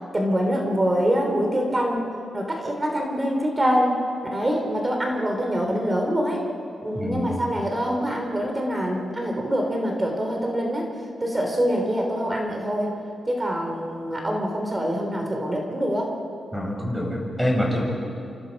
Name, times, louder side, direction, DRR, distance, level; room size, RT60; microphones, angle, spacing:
voice 1, 0.1-3.9 4.3-6.5 6.8-10.9 11.2-12.9 13.3-16.1, equal, 20° right, 1 dB, 3.5 m, -25 dB
voice 2, 6.9-7.4 16.5-17.8, equal, 5° right, -2 dB, 7.5 m, -26 dB
28.5 x 27.5 x 5.4 m, 2.6 s
wide cardioid pair, 110°, 0 cm